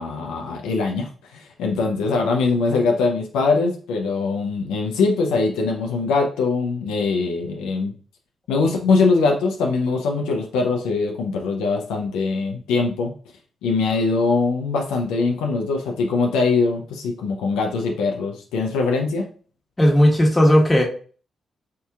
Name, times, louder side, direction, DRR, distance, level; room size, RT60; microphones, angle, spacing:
voice 1, 0.0-7.9 8.5-13.1 13.6-19.3, left 4 dB, 85° left, 2 dB, 0.5 m, -22 dB
voice 2, 19.8-20.8, equal, 20° left, -1 dB, 1.3 m, -15 dB
4.5 x 2.7 x 2.3 m, 0.42 s
supercardioid pair, 50°, 0 cm